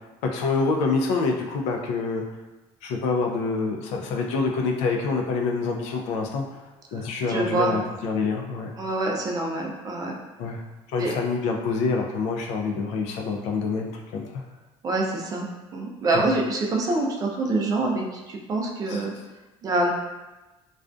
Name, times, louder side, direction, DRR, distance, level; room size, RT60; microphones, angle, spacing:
voice 1, 0.3-2.2 2.8-6.4 6.9-8.7 10.4-10.6 10.9-14.4 16.1-16.3 18.9-19.0, left 4 dB, 80° left, 2 dB, 0.4 m, -26 dB
voice 2, 6.9-7.7 8.8-10.2 11.0-11.1 14.8-15.5 15.7-19.1 19.6-19.9, right 2 dB, 35° right, 0 dB, 0.4 m, -26 dB
2.4 x 2.2 x 2.5 m, 1.1 s
cardioid pair, 140°, 11 cm